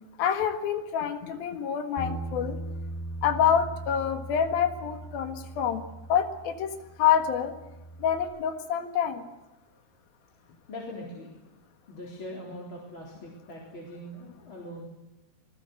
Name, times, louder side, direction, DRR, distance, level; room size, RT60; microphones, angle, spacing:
voice 1, 0.2-2.6 3.2-5.8 6.1-6.7 7.0-7.5 8.0-9.2, left 8 dB, 70° left, 7 dB, 3.4 m, -26 dB
Bass guitar, 2.0-8.2, right 2 dB, 90° left, 5.8 m, -39 dB
voice 2, 10.7-11.3 11.9-14.8, left 1 dB, 30° left, -3 dB, 4.3 m, -41 dB
27.0 x 20.0 x 7.8 m, 1.0 s
omnidirectional pair, 4.5 m